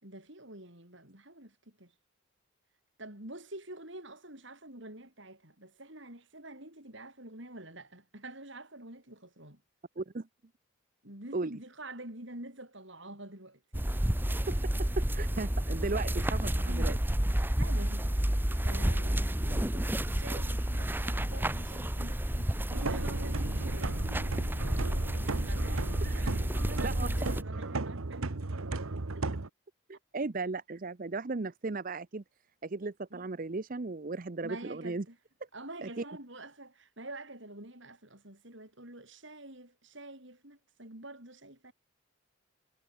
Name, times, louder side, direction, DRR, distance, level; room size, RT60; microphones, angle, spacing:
voice 1, 0.0-1.9 3.0-9.6 11.0-13.9 16.6-16.9 17.6-24.3 25.4-28.4 29.1-29.3 33.1-33.2 34.4-35.2 35.5-41.7, right 1 dB, 55° right, 6.5 m, -47 dB
voice 2, 10.0-10.3 11.3-11.6 14.5-17.0 26.0-26.3 26.8-27.8 29.9-32.2 32.6-35.0 35.8-36.0, right 3 dB, 40° right, 0.6 m, -36 dB
sound 1, 13.7-27.4, right 1 dB, 10° right, 0.9 m, -30 dB
sound 2, 22.7-29.5, right 2 dB, 75° right, 1.2 m, -35 dB
head